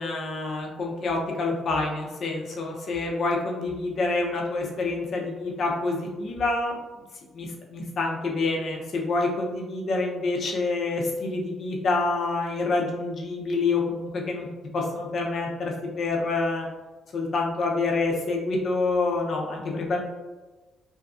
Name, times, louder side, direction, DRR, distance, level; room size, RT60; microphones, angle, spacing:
voice 1, 0.0-6.8 7.3-14.5 14.7-16.7 17.1-20.0, left 3 dB, 55° left, 0 dB, 0.5 m, -27 dB
2.6 x 2.3 x 2.4 m, 1.2 s
cardioid pair, 90°, 0 cm